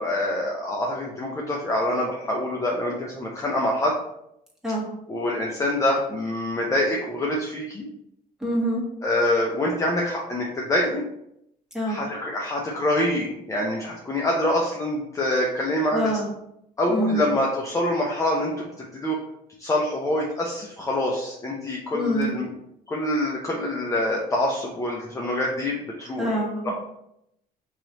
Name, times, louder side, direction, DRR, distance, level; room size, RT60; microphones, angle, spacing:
voice 1, 0.0-4.0 5.1-7.9 9.0-11.0 11.9-16.1 16.8-18.7 18.9-19.2 19.6-22.5 22.9-26.7, left 1 dB, 20° left, -2 dB, 0.6 m, -25 dB
voice 2, 8.4-8.8 11.7-12.0 15.9-16.2 16.9-17.2 21.9-22.3 26.2-26.7, equal, 5° right, -4 dB, 1.5 m, -25 dB
3.2 x 3.0 x 4.0 m, 0.78 s
cardioid pair, 110°, 17 cm